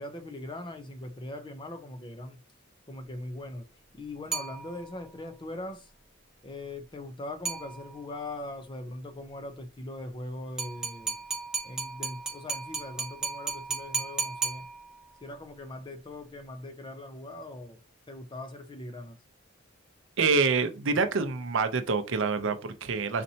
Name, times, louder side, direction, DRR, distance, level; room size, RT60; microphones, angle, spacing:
voice 1, 0.0-2.4 2.9-3.7 3.9-5.9 6.4-11.2 11.6-14.7 15.2-17.8 18.1-19.2, left 1 dB, 25° left, 0.6 m, -40 dB
sound 1, 4.3-5.1 7.5-8.2 10.6-15.2, right 4 dB, 5° right, 1.0 m, -35 dB
voice 2, 20.2-23.2, right 4 dB, 65° right, 0.6 m, -26 dB
4.3 x 4.1 x 2.7 m
head